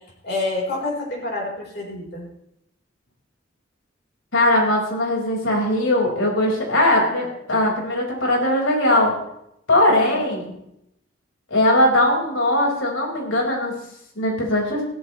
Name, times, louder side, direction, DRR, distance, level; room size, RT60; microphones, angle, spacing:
voice 1, 0.2-2.3 9.9-10.2, left 2 dB, 55° left, -2 dB, 4.5 m, -28 dB
voice 2, 4.3-9.1 9.7-10.5 11.5-13.8 14.2-14.8, left 1 dB, 85° left, -1 dB, 5.2 m, -20 dB
16.5 x 14.0 x 3.3 m, 0.77 s
head